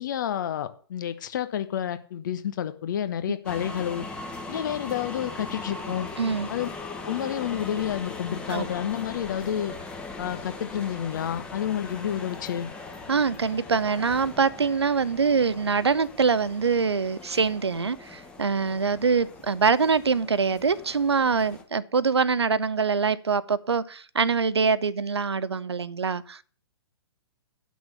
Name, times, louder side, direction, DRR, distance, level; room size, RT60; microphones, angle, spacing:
voice 1, 0.0-4.1 4.5-6.1 6.5-6.7 7.0-9.7 10.2-12.7, left 10 dB, 45° left, 1.0 m, -30 dB
sound 1, 3.4-21.6, left 3 dB, 5° left, 1.2 m, -40 dB
voice 2, 6.2-6.5 8.5-8.7 13.1-26.4, right 5 dB, 75° right, 0.6 m, -24 dB
9.5 x 6.2 x 7.0 m
figure-of-eight pair, 120°, 14 cm